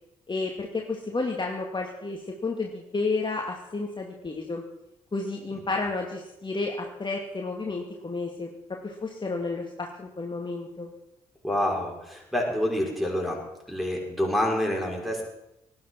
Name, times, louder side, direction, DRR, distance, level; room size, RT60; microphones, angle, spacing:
voice 1, 0.3-4.6 5.1-8.5 8.8-10.9, left 3 dB, 30° left, 1 dB, 2.2 m, -31 dB
voice 2, 11.4-13.4 13.7-15.2, left 1 dB, ahead, 0 dB, 6.3 m, -27 dB
18.5 x 11.5 x 6.0 m, 0.89 s
hypercardioid pair, 45°, 17 cm